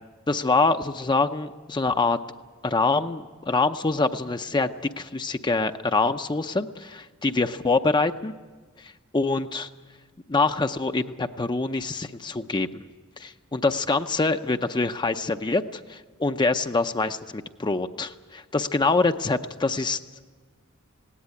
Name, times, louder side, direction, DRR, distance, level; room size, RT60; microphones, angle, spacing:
voice 1, 0.3-2.2 2.6-7.0 7.2-8.3 8.8-9.7 10.3-12.8 13.2-15.6 15.9-20.0, left 3 dB, 20° left, 8 dB, 0.6 m, -25 dB
18.5 x 17.5 x 9.8 m, 1.4 s
head